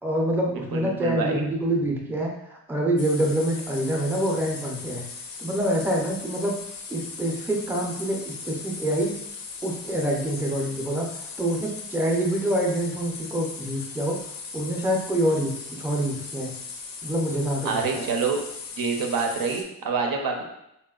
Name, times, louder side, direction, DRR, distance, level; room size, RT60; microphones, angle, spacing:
voice 1, 0.0-5.1 5.4-6.6 6.9-9.2 9.6-11.1 11.4-14.2 14.5-16.6 17.0-18.1, right 1 dB, 5° right, 0 dB, 0.4 m, -26 dB
voice 2, 0.5-1.4 17.6-18.4 18.8-20.4, right 5 dB, 90° right, 2 dB, 0.5 m, -27 dB
sound 1, 3.0-19.6, left 4 dB, 75° left, 0.5 m, -39 dB
3.8 x 2.1 x 2.3 m, 0.82 s
wide cardioid pair, 135°, 34 cm